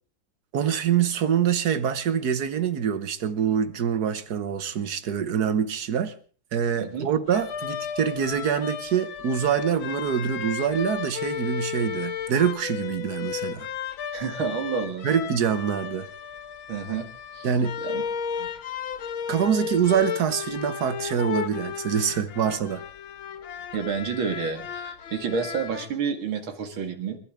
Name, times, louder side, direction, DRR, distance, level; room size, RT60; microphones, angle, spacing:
voice 1, 0.5-6.1 6.5-13.7 15.0-16.1 17.4-17.8 19.3-22.8, right 8 dB, 55° right, 1.5 m, -25 dB
voice 2, 6.8-7.1 14.1-15.1 16.7-17.1 17.3-17.5 17.8-18.0 18.4-18.5 23.7-27.2, right 6 dB, 80° right, 2.7 m, -29 dB
sound 1, 7.3-25.9, left 8 dB, 85° left, 1.8 m, -34 dB
29.5 x 12.0 x 3.6 m
omnidirectional pair, 2.2 m